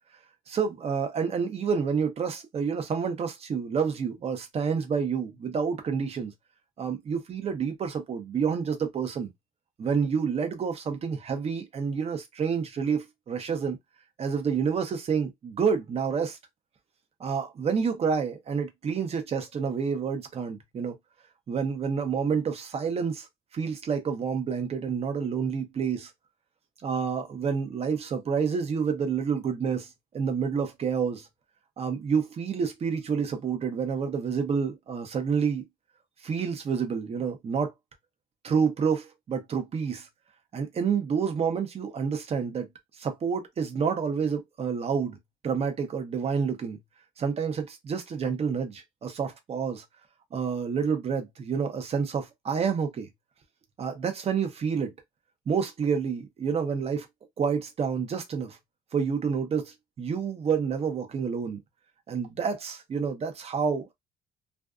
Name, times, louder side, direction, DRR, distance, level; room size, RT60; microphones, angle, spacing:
voice 1, 0.5-6.3 6.8-9.3 9.8-13.8 14.2-16.4 17.2-20.9 21.5-23.3 23.5-26.1 26.8-31.3 31.8-35.6 36.2-37.7 38.4-40.1 40.5-42.7 43.0-45.2 45.4-46.8 47.2-49.8 50.3-53.1 53.8-54.9 55.5-57.1 57.4-58.6 58.9-61.6 62.1-63.9, right 6 dB, 35° right, 0.7 m, -28 dB
2.5 x 2.3 x 2.4 m
cardioid pair, 110°, 17 cm